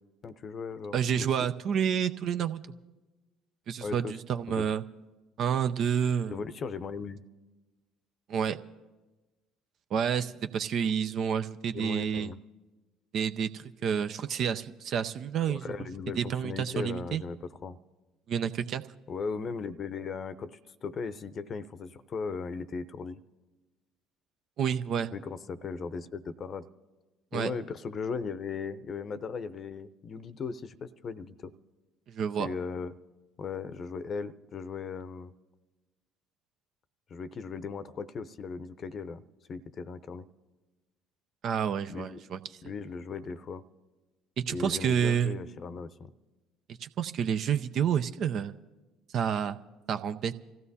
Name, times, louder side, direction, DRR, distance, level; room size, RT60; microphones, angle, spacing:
voice 1, 0.2-1.5 3.8-4.2 4.5-4.7 6.3-7.2 11.7-12.4 15.5-17.8 19.1-23.2 25.1-26.6 27.3-31.5 32.4-33.0 33.4-35.3 37.1-39.2 39.5-40.3 41.9-42.2 42.6-43.6 44.5-46.1, left 5 dB, 40° left, 14 dB, 0.7 m, -37 dB
voice 2, 0.9-2.6 3.7-4.8 5.4-6.4 8.3-8.6 9.9-12.3 13.1-15.7 16.2-17.2 18.3-18.8 24.6-25.1 27.3-27.5 32.1-32.5 41.4-42.4 44.4-45.4 46.8-48.6 49.1-49.6 49.9-50.3, right 8 dB, 55° right, 10 dB, 0.5 m, -29 dB
27.0 x 15.5 x 2.8 m, 1.2 s
hypercardioid pair, 60°, 0 cm